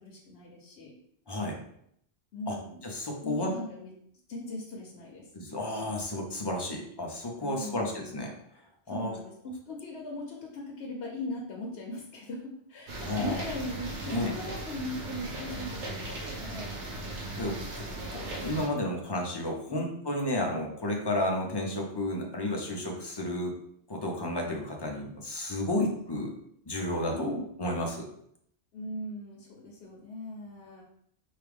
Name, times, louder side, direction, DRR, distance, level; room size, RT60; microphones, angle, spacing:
voice 1, 0.0-1.0 2.3-2.8 3.2-3.9 4.3-5.3 7.4-8.2 8.9-16.8 19.7-19.9 27.1-27.5 28.7-30.8, left 1 dB, 70° left, -2 dB, 1.0 m, -39 dB
voice 2, 1.3-1.6 2.5-2.6 2.8-3.5 5.3-8.3 8.9-9.1 13.0-13.4 14.1-14.3 17.4-23.5 23.9-26.3 26.7-27.3 27.6-28.1, left 1 dB, 30° left, 0 dB, 0.5 m, -32 dB
sound 1, 12.9-18.7, right 2 dB, 85° right, 1.1 m, -38 dB
4.6 x 2.5 x 3.4 m, 0.70 s
omnidirectional pair, 1.1 m